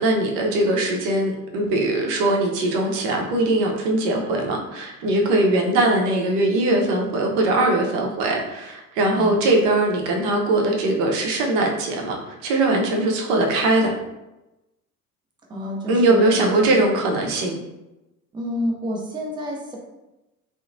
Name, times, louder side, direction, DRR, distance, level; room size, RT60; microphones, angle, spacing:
voice 1, 0.0-13.9 15.9-17.6, right 2 dB, 55° right, 1 dB, 0.7 m, -21 dB
voice 2, 9.1-9.4 15.5-16.8 18.3-19.8, equal, 10° right, -1 dB, 0.4 m, -29 dB
2.8 x 2.0 x 2.5 m, 0.98 s
figure-of-eight pair, 65°, 45 cm